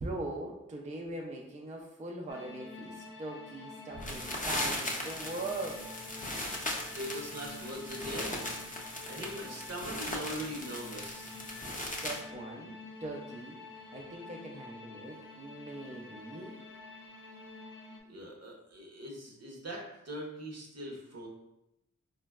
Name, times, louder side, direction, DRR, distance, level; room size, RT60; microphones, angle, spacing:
voice 1, 0.0-5.9 11.9-13.7 13.9-16.5, right 2 dB, 25° right, 0 dB, 0.4 m, -41 dB
sound 1, 2.3-18.0, left 3 dB, 85° left, 0.5 m, -48 dB
sound 2, 3.9-12.2, left 1 dB, 25° left, 0.6 m, -38 dB
voice 2, 6.6-8.5 9.0-11.4 18.1-21.3, equal, 55° right, -1 dB, 0.7 m, -41 dB
3.8 x 2.1 x 2.2 m, 0.89 s
cardioid pair, 45°, 31 cm